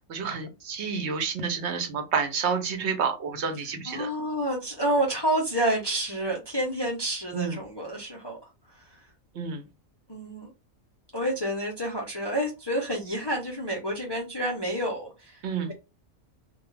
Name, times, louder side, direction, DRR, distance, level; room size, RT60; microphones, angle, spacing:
voice 1, 0.1-4.1 7.3-7.6 9.3-9.6 15.4-15.7, right 6 dB, 65° right, 0.8 m, -29 dB
voice 2, 3.9-8.4 8.7-9.0 10.1-10.5 11.1-15.7, right 1 dB, 35° left, 0.4 m, -29 dB
2.2 x 2.2 x 3.1 m
omnidirectional pair, 1.3 m